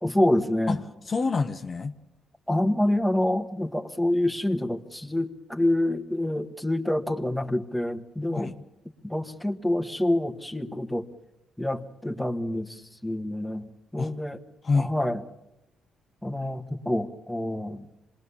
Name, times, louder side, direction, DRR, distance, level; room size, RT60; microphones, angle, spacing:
voice 1, 0.0-0.8 2.5-8.5 9.0-11.1 11.6-14.4 14.7-15.2 16.2-17.9, left 1 dB, ahead, 5 dB, 1.6 m, -27 dB
voice 2, 0.7-1.9 8.3-8.6 14.0-14.1 14.6-14.9, left 4 dB, 35° left, 6 dB, 1.1 m, -27 dB
26.5 x 20.5 x 7.1 m, 0.94 s
cardioid pair, 90°, 0 cm